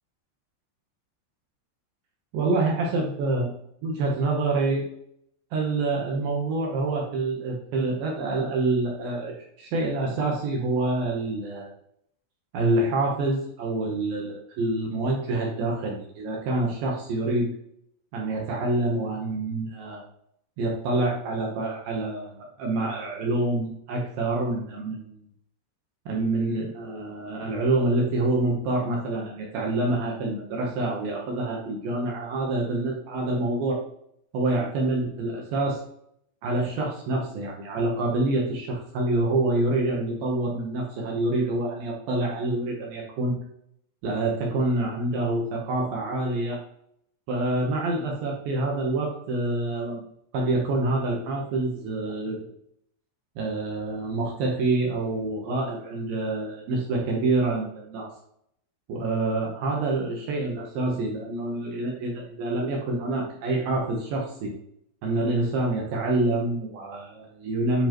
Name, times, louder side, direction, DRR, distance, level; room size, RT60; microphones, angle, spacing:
voice 1, 2.3-4.8 5.5-11.7 12.5-17.5 18.1-20.0 20.6-25.2 26.1-33.8 34.3-35.8 36.4-43.3 44.0-46.6 47.3-50.0 50.3-52.4 53.4-58.1 58.9-64.5 65.0-67.9, right 2 dB, 75° right, -1 dB, 2.1 m, -27 dB
9.9 x 4.7 x 3.0 m, 0.70 s
omnidirectional pair, 5.7 m